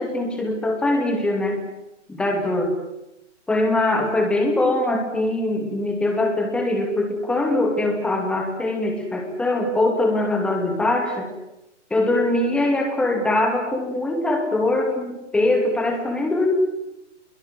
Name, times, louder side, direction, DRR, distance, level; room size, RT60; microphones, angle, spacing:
voice 1, 0.0-1.6 2.1-2.7 3.5-11.3 11.9-16.5, left 2 dB, 5° left, 2 dB, 2.5 m, -22 dB
26.0 x 22.5 x 8.1 m, 0.92 s
hypercardioid pair, 165°, 36 cm